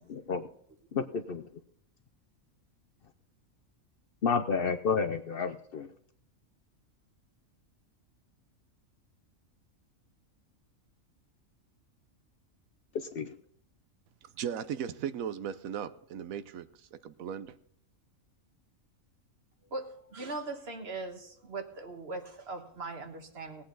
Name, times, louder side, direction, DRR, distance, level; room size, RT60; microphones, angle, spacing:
voice 1, 0.1-0.4 0.9-1.4 4.2-5.9 12.9-13.3, left 5 dB, 55° left, 8 dB, 0.8 m, -30 dB
voice 2, 14.4-17.6, right 8 dB, 90° right, 13 dB, 1.1 m, -37 dB
voice 3, 19.6-23.6, right 3 dB, 50° right, 6 dB, 1.6 m, -40 dB
18.5 x 8.5 x 3.9 m, 0.65 s
omnidirectional pair, 1.4 m